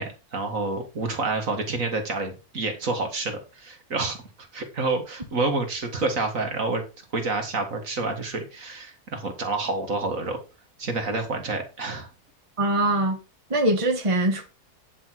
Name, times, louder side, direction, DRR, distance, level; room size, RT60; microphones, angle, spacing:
voice 1, 0.0-4.2 4.5-6.8 7.1-10.4 10.8-12.1, right 3 dB, 55° right, 2.1 m, -28 dB
voice 2, 12.6-13.2 13.5-14.4, right 1 dB, 20° right, 1.6 m, -22 dB
9.8 x 6.0 x 4.6 m
omnidirectional pair, 1.7 m